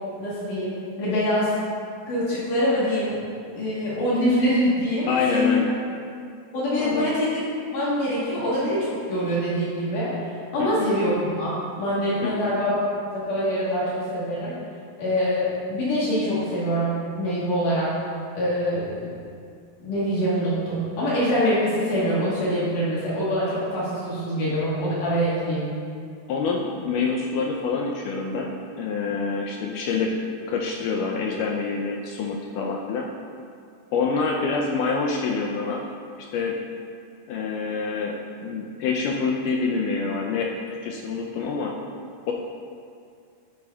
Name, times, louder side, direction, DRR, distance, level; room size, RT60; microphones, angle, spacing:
voice 1, 0.2-1.6 2.1-3.2 3.4-5.6 6.5-7.4 7.7-14.6 15.0-17.9 18.3-19.1 19.8-25.7, equal, 65° left, -9 dB, 2.8 m, -24 dB
voice 2, 5.1-5.8 6.8-7.2 10.6-10.9 12.2-12.5 26.3-30.2 30.5-33.1 33.9-35.9 36.2-36.6 37.3-41.7 42.3-42.4, left 4 dB, 80° left, 0 dB, 1.9 m, -26 dB
10.5 x 8.5 x 2.3 m, 2.3 s
omnidirectional pair, 4.2 m